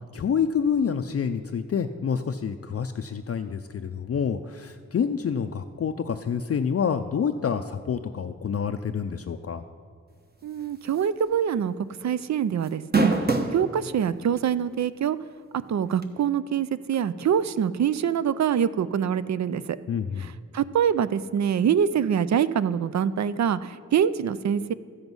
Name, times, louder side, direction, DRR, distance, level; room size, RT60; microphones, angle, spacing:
voice 1, 0.1-9.6 19.9-20.3, left 7 dB, 50° left, 7 dB, 0.4 m, -27 dB
voice 2, 10.4-11.7 12.0-13.1 13.5-15.2 15.5-19.8 20.2-24.7, right 8 dB, 60° right, 15 dB, 0.4 m, -25 dB
sound 1, 11.0-11.2 11.6-11.7 12.7-13.6 14.4-14.5 16.0-16.1, right 3 dB, 30° right, 1.1 m, -22 dB
13.5 x 7.9 x 5.4 m, 2.1 s
wide cardioid pair, 70°, 31 cm